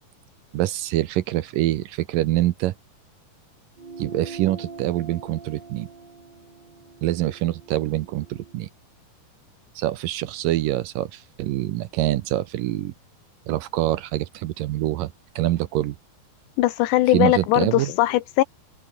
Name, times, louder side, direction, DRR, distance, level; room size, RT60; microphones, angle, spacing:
voice 1, 0.5-2.7 4.0-5.9 7.0-8.7 9.8-12.9 13.5-16.0 17.1-17.9, right 15 dB, 75° right, 2.1 m, -25 dB
sound 1, 3.8-8.6, right 4 dB, 25° right, 3.7 m, -42 dB
voice 2, 16.6-18.4, left 16 dB, 85° left, 3.2 m, -20 dB
omnidirectional pair, 4.9 m